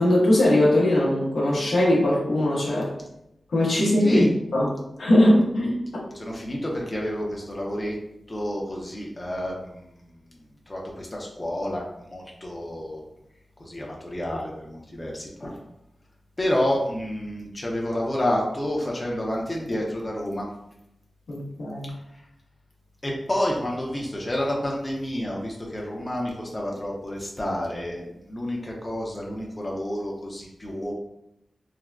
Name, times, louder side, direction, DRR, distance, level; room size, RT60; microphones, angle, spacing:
voice 1, 0.0-2.9 3.5-6.0 21.3-21.9, left 1 dB, 80° left, -6 dB, 0.9 m, -21 dB
voice 2, 6.1-8.0 8.3-10.1 10.7-13.0 13.6-15.6 16.4-20.5 22.1-22.2 23.0-30.9, left 1 dB, 30° left, -3 dB, 0.6 m, -29 dB
3.4 x 2.1 x 2.4 m, 0.82 s
cardioid pair, 40°, 0 cm